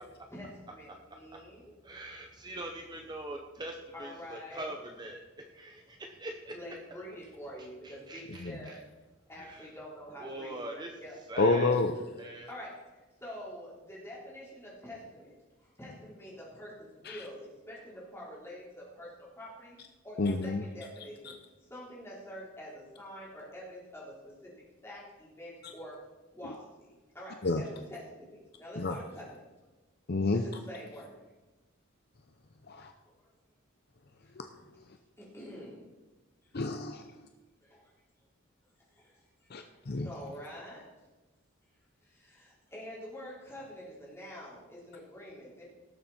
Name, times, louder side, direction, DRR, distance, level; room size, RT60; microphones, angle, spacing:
voice 1, 0.3-1.7 3.9-4.7 6.5-8.8 9.3-10.6 11.0-11.1 12.5-12.8 13.2-15.3 15.8-19.8 20.0-21.3 21.7-24.1 24.8-26.0 26.3-26.9 27.1-29.4 30.3-31.1 35.2-35.8 39.0-39.1 40.0-40.9 42.1-45.6, equal, 10° left, -6 dB, 3.9 m, -46 dB
voice 2, 1.8-6.6 7.6-8.8 9.3-9.7 10.2-11.9 12.2-12.5, right 1 dB, 20° right, 3 dB, 0.8 m, -43 dB
voice 3, 11.4-11.9 17.0-17.3 20.2-20.6 27.4-27.6 28.8-29.0 30.1-30.4 32.7-32.9 34.4-34.5 36.5-37.0 39.5-40.1, left 3 dB, 50° left, 6 dB, 0.6 m, -29 dB
18.0 x 7.2 x 4.3 m, 1.2 s
head